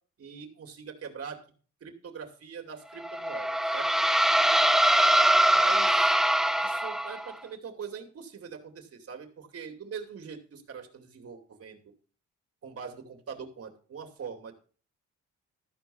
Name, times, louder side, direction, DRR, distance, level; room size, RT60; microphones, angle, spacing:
voice 1, 0.2-1.4 1.8-3.9 5.5-6.2 6.6-11.9 12.6-14.5, right 6 dB, 50° right, 5 dB, 2.5 m, -42 dB
sound 1, 3.0-7.3, right 1 dB, ahead, 0.5 m, -23 dB
13.5 x 4.6 x 7.0 m, 0.41 s
cardioid pair, 90°, 30 cm